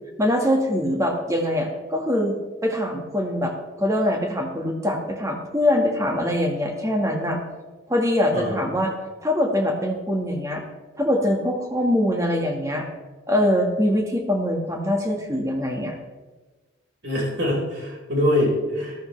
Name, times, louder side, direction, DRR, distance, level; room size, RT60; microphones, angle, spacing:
voice 1, 0.2-2.4 2.6-7.4 7.9-8.9 9.2-10.6 10.9-12.9 13.3-16.0, left 1 dB, 15° right, 2 dB, 1.5 m, -23 dB
voice 2, 17.0-18.9, left 1 dB, 60° right, -3 dB, 4.5 m, -23 dB
13.5 x 13.0 x 3.2 m, 1.3 s
head